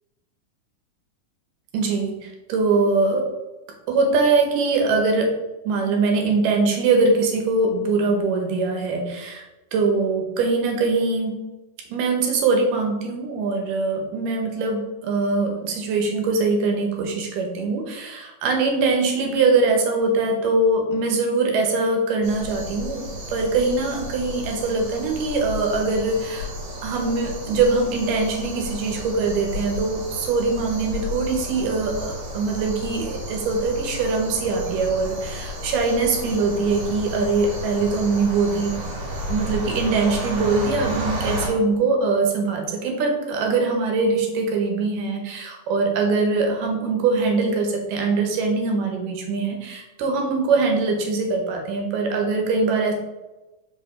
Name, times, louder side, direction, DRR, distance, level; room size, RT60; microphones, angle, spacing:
voice 1, 1.7-3.3 3.9-5.3 5.7-9.4 9.7-11.4 11.9-26.5 26.8-38.8 39.3-52.9, right 3 dB, 80° right, 2 dB, 2.6 m, -22 dB
sound 1, 22.2-41.5, left 1 dB, 60° right, 2.8 m, -32 dB
5.2 x 4.9 x 3.7 m, 1.0 s
omnidirectional pair, 3.7 m